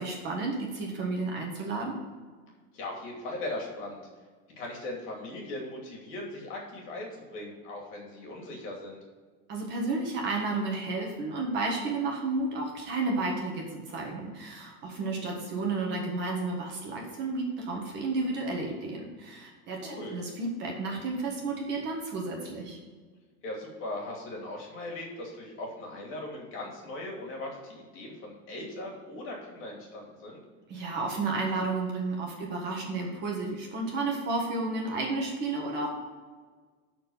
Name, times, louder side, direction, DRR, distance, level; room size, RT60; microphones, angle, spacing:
voice 1, 0.0-2.0 9.5-22.8 30.7-35.9, right 3 dB, 30° right, -1 dB, 1.6 m, -32 dB
voice 2, 2.7-4.0 4.6-9.0 15.0-15.4 19.8-20.2 23.4-30.4, left 1 dB, 40° left, -1 dB, 2.5 m, -39 dB
11.5 x 4.5 x 5.6 m, 1.5 s
cardioid pair, 180°, 33 cm